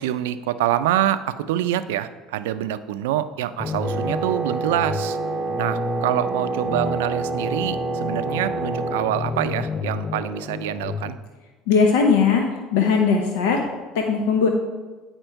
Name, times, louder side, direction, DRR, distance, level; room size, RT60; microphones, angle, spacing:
voice 1, 0.0-5.2 5.6-11.2, right 12 dB, 90° right, 12 dB, 0.4 m, -25 dB
sound 1, 3.6-11.1, left 4 dB, 30° left, 0.4 m, -31 dB
Wind instrument woodwind instrument, 3.8-9.2, right 3 dB, 15° right, 0.7 m, -28 dB
voice 2, 11.7-12.4 12.7-13.7 13.9-14.5, left 5 dB, 85° left, 2 dB, 0.8 m, -18 dB
8.8 x 4.4 x 4.5 m, 1.3 s
supercardioid pair, 100°, 0 cm